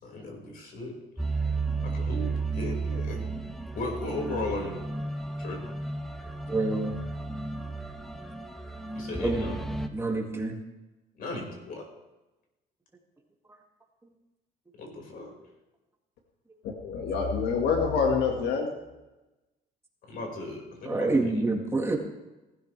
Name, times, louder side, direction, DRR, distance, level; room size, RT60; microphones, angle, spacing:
voice 1, 0.0-1.0 1.8-3.3 3.7-4.8 5.4-5.7 9.0-9.6 11.2-11.8 14.8-15.4 20.0-21.4, left 2 dB, 60° left, 1 dB, 5.2 m, -36 dB
sound 1, 1.2-9.9, right 3 dB, ahead, 1.2 m, -33 dB
voice 2, 6.5-7.0 9.2-9.5 9.9-10.6 20.9-22.0, right 2 dB, 15° right, 0 dB, 2.2 m, -27 dB
voice 3, 16.6-18.7, left 5 dB, 85° left, 2 dB, 1.8 m, -26 dB
18.5 x 12.5 x 3.3 m, 1.0 s
cardioid pair, 110°, 17 cm